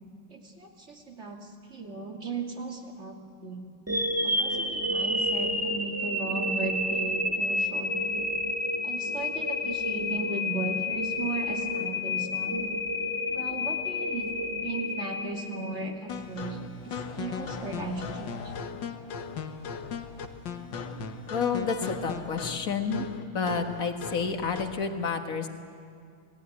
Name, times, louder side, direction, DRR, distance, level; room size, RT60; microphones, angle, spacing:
voice 1, 0.3-3.6 4.2-8.1 8.8-12.7 13.3-14.3 14.6-16.6 16.9-18.5, right 3 dB, 35° right, 1 dB, 2.8 m, -36 dB
sound 1, 3.9-16.0, left 2 dB, 10° right, 1.4 m, -30 dB
sound 2, 16.1-24.8, left 5 dB, 70° left, 1.9 m, -37 dB
voice 2, 21.3-23.0 23.3-25.5, left 5 dB, 45° left, 5 dB, 2.0 m, -29 dB
28.0 x 19.0 x 9.7 m, 2.3 s
omnidirectional pair, 2.1 m